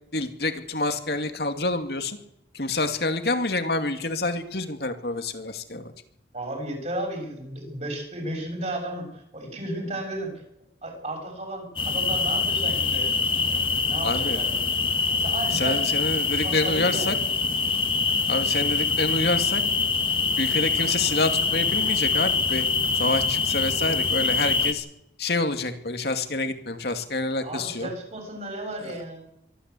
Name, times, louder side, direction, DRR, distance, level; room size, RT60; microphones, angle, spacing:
voice 1, 0.1-2.2 2.5-5.9 14.0-14.4 15.5-17.2 18.3-19.6 20.4-22.6 22.9-24.9 25.2-27.9 28.8-29.0, left 2 dB, 60° left, 7 dB, 2.4 m, -27 dB
voice 2, 6.3-10.3 10.8-13.1 13.5-14.6 15.1-15.8 16.4-17.2 27.4-29.2, right 1 dB, 35° right, 3 dB, 7.1 m, -34 dB
sound 1, 11.8-24.7, left 4 dB, 30° left, 1.8 m, -24 dB
24.0 x 14.0 x 8.4 m, 0.81 s
head